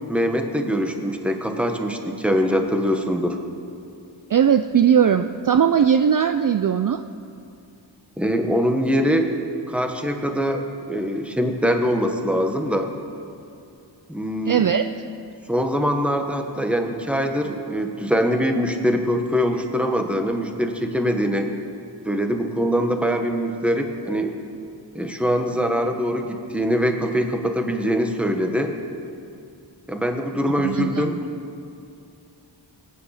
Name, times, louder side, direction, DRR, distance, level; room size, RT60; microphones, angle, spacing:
voice 1, 0.1-3.4 8.2-12.9 14.1-14.7 15.5-21.5 22.0-24.4 24.9-28.7 29.9-31.2, equal, 5° right, 4 dB, 1.2 m, -23 dB
voice 2, 4.3-7.0 14.5-14.8 30.6-31.1, right 8 dB, 50° right, 8 dB, 0.4 m, -19 dB
22.0 x 9.2 x 4.9 m, 2.5 s
wide cardioid pair, 100°, 44 cm